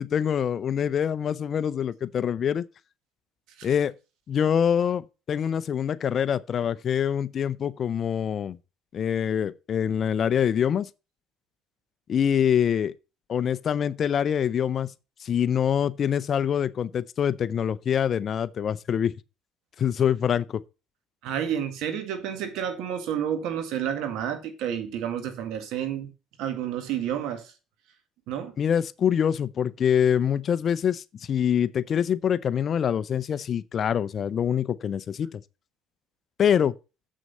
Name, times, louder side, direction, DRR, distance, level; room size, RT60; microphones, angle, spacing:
voice 1, 0.0-2.6 3.6-3.9 4.3-8.6 8.9-10.9 12.1-12.9 13.3-14.9 15.2-19.2 19.8-20.6 28.6-35.4 36.4-36.7, left 8 dB, 45° left, 0.6 m, -25 dB
voice 2, 21.2-26.1 26.4-27.5 28.3-28.5, right 9 dB, 75° right, 1.8 m, -30 dB
7.6 x 6.3 x 5.5 m
cardioid pair, 100°, 0 cm